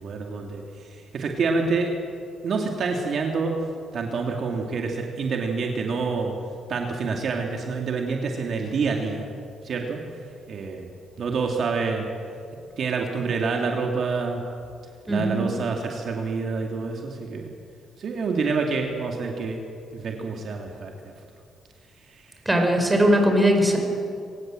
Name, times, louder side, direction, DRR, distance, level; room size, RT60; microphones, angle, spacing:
voice 1, 0.0-1.9 2.4-3.5 3.9-6.3 6.7-9.3 9.6-10.0 10.5-10.9 11.2-12.1 12.8-14.4 15.1-17.5 18.0-19.6 19.9-20.9 22.1-22.2, right 4 dB, 60° right, 2 dB, 2.4 m, -27 dB
voice 2, 15.1-15.4 22.5-23.8, equal, 10° right, 3 dB, 5.4 m, -19 dB
25.0 x 18.0 x 7.6 m, 2.5 s
cardioid pair, 90°, 0 cm